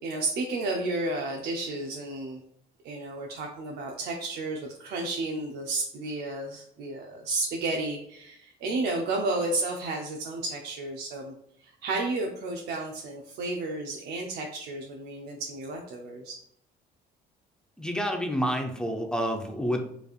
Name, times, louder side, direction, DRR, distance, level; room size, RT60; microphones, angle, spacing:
voice 1, 0.0-2.4 2.8-11.3 11.6-16.4, right 2 dB, 75° right, 0 dB, 0.7 m, -32 dB
voice 2, 17.8-19.8, equal, 5° left, 3 dB, 0.7 m, -28 dB
4.9 x 3.3 x 2.4 m, 0.69 s
cardioid pair, 110°, 17 cm